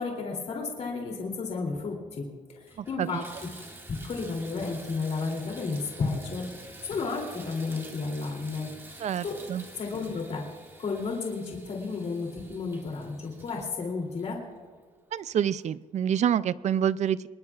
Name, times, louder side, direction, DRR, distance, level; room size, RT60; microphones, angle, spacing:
voice 1, 0.0-2.3 2.6-3.2 4.0-6.4 6.8-8.7 9.2-9.4 9.8-10.4 10.8-14.4, left 4 dB, 50° left, 0 dB, 2.9 m, -32 dB
Water tap faucet / Bathtub (filling or washing), 2.0-2.1 2.6-15.0 15.6-15.7 16.2-16.3, right 2 dB, 15° right, 1.9 m, -48 dB
voice 2, 2.8-3.2 9.0-9.6 15.1-17.2, right 9 dB, 50° right, 16 dB, 0.4 m, -27 dB
26.0 x 20.5 x 2.4 m, 1.5 s
wide cardioid pair, 175°, 15 cm